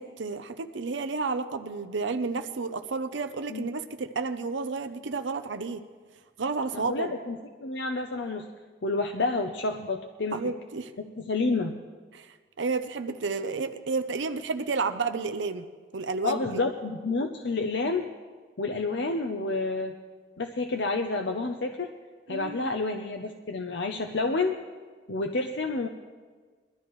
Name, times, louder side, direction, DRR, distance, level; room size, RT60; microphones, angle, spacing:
voice 1, 0.0-5.8 6.4-7.1 10.3-10.9 12.1-15.7 15.9-16.4 22.3-22.7, right 4 dB, 80° right, 8 dB, 0.6 m, -31 dB
voice 2, 6.7-8.5 8.8-10.4 11.0-11.7 16.2-18.0 18.6-19.9 20.4-21.9 22.3-24.6 25.1-25.9, left 3 dB, 70° left, 5 dB, 0.7 m, -29 dB
22.0 x 13.0 x 3.2 m, 1.5 s
head